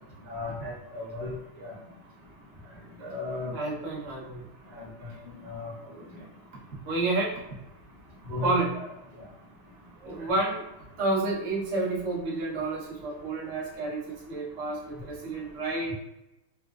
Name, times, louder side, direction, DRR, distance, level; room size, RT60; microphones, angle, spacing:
voice 1, 0.3-1.7 3.0-3.5 5.0-5.1 5.4-5.7 8.3-8.6, left 3 dB, 55° right, -4 dB, 1.0 m, -35 dB
voice 2, 3.5-4.5 6.9-7.4 8.4-8.8 10.0-10.6 11.0-15.9, right 2 dB, 85° right, -5 dB, 0.6 m, -30 dB
4.2 x 2.2 x 2.3 m, 0.95 s
omnidirectional pair, 2.4 m